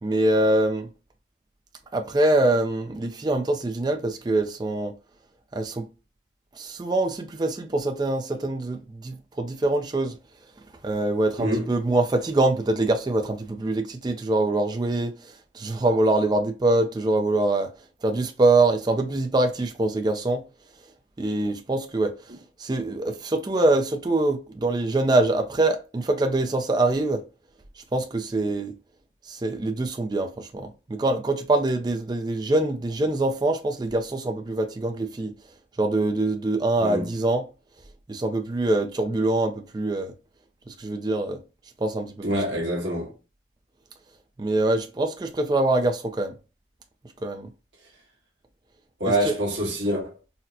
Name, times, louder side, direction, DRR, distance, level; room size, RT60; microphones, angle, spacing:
voice 1, 0.0-0.9 1.9-4.9 5.5-5.8 6.5-10.2 10.8-17.7 18.0-20.4 21.2-22.2 22.6-27.2 27.9-28.7 29.3-35.3 35.8-37.4 38.1-40.1 40.7-41.4 41.8-42.3 44.4-46.4 47.2-47.5 49.3-49.4, right 2 dB, 20° right, 0.3 m, -24 dB
voice 2, 42.2-43.1 49.0-50.2, equal, 80° right, 1.2 m, -25 dB
4.1 x 2.0 x 2.6 m
head